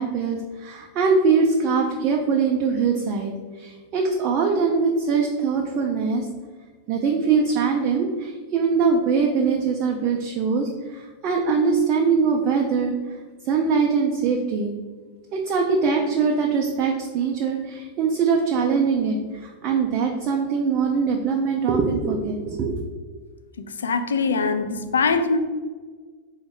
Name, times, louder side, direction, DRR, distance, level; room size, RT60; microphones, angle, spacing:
voice 1, 0.0-3.3 3.6-6.3 6.9-13.0 13.5-14.7 15.3-19.2 19.4-22.7, right 5 dB, 35° right, 1 dB, 0.4 m, -22 dB
voice 2, 23.6-25.4, left 4 dB, 70° left, 8 dB, 0.3 m, -23 dB
3.5 x 2.1 x 4.2 m, 1.5 s
figure-of-eight pair, 90°, 0 cm